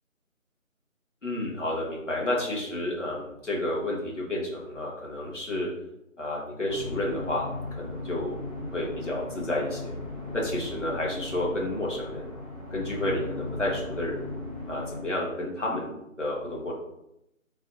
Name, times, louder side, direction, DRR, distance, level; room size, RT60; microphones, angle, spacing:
voice 1, 1.2-5.7 6.2-8.4 8.7-9.9 10.3-12.3 12.7-14.2 14.7-16.7, left 1 dB, 60° left, -3 dB, 1.4 m, -31 dB
sound 1, 6.7-15.0, left 2 dB, 25° left, 0.8 m, -37 dB
4.0 x 2.6 x 4.1 m, 0.84 s
figure-of-eight pair, 160°, 41 cm